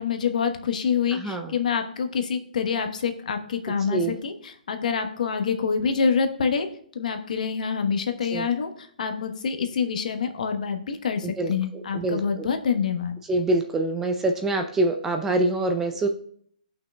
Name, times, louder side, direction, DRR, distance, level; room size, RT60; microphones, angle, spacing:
voice 1, 0.0-6.7 6.9-13.2, left 6 dB, 60° left, 6 dB, 1.0 m, -26 dB
voice 2, 1.1-1.5 3.9-4.1 8.3-8.5 11.2-11.5 11.9-12.5 13.3-16.1, right 2 dB, 10° right, 5 dB, 0.4 m, -25 dB
16.5 x 5.8 x 2.2 m, 0.62 s
hypercardioid pair, 160°, 5 cm